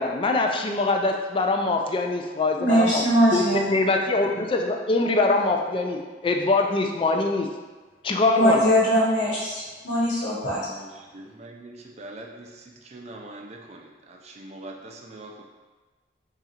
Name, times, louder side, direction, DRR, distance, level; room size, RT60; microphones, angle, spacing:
voice 1, 0.0-3.0 3.3-7.5 8.0-8.7, left 3 dB, 30° left, 2 dB, 0.3 m, -23 dB
voice 2, 2.6-3.7 8.4-10.6, equal, 85° left, -7 dB, 1.1 m, -21 dB
voice 3, 10.6-15.4, right 2 dB, 35° right, 1 dB, 0.4 m, -43 dB
3.8 x 2.4 x 4.3 m, 1.3 s
head